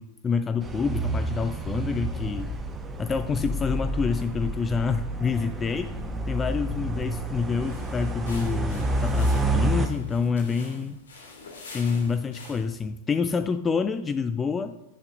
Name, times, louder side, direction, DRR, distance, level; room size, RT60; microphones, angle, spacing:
voice 1, 0.0-2.5 3.0-5.9 6.3-11.0 11.7-14.8, left 5 dB, 20° left, 10 dB, 0.4 m, -27 dB
sound 1, 0.6-9.9, right 1 dB, 15° right, 1.1 m, -29 dB
sound 2, 7.6-12.8, left 3 dB, 65° left, 2.4 m, -46 dB
11.0 x 10.5 x 2.6 m, 0.95 s
figure-of-eight pair, 90°, 0 cm